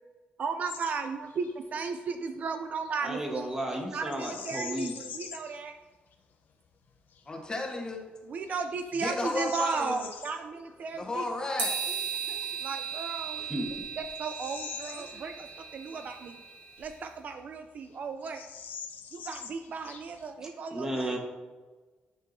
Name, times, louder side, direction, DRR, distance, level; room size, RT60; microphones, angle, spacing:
voice 1, 0.4-3.6 3.9-5.7 8.3-11.2 12.6-13.5 14.0-15.5 15.7-16.4 16.8-18.4 19.1-21.2, right 5 dB, 50° right, 7 dB, 0.3 m, -35 dB
Bird vocalization bird call bird song, 0.7-1.0 1.3-1.5 4.1-5.6 6.1-6.2 6.8-7.2 7.8-7.9 8.5-10.4 12.5-12.6 13.2-15.6 16.0-16.1 16.8-17.6 17.8-17.9 18.2-20.3, left 6 dB, 65° left, 0.6 m, -44 dB
voice 2, 3.0-4.9 13.3-13.7 20.7-21.2, right 1 dB, 15° right, 1 dB, 1.2 m, -33 dB
voice 3, 7.3-8.0 8.9-10.1 10.9-12.4 15.0-15.3, left 2 dB, 25° left, 1 dB, 0.9 m, -34 dB
sound 1, 11.6-16.9, right 5 dB, 80° right, 1.7 m, -36 dB
9.8 x 4.5 x 2.6 m, 1.3 s
cardioid pair, 135°, 3 cm